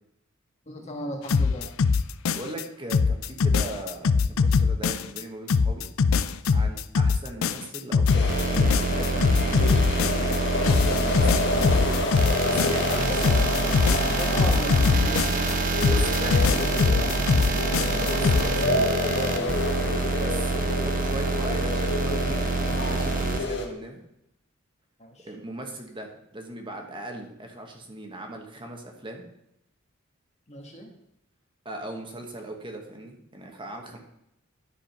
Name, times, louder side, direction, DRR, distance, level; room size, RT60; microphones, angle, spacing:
voice 1, 0.7-1.7 13.1-13.2 14.1-15.4 25.0-25.3 30.5-30.9, equal, 30° left, 2 dB, 1.5 m, -35 dB
sound 1, 1.3-2.6 2.9-5.2 5.5-10.4 10.6-13.0 13.2-15.5 15.8-18.4, left 5 dB, 75° left, 0.5 m, -22 dB
voice 2, 2.3-5.9 6.5-9.7 10.7-11.6 12.4-13.4 15.8-16.9 18.0-19.6 20.2-24.0 25.2-29.3 31.6-34.0, right 1 dB, 25° right, 2 dB, 1.3 m, -39 dB
sound 2, 8.1-23.7, left 2 dB, 55° left, 1.4 m, -29 dB
sound 3, 8.3-23.4, right 3 dB, 40° right, 1.0 m, -27 dB
12.0 x 5.0 x 5.9 m, 0.80 s
head